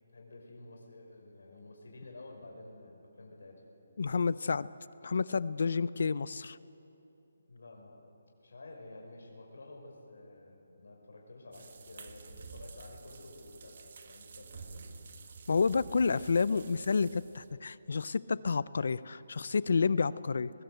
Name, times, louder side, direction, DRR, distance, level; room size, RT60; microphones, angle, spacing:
voice 1, 0.1-3.6 7.4-8.1 8.4-14.9, left 2 dB, 80° left, 0 dB, 5.8 m, -51 dB
voice 2, 4.0-4.7 5.0-6.6 15.5-20.5, left 5 dB, 60° left, 18 dB, 0.6 m, -30 dB
sound 1, 11.5-17.5, right 4 dB, 50° right, 1.8 m, -50 dB
21.5 x 20.0 x 7.9 m, 2.9 s
hypercardioid pair, 170°, 0 cm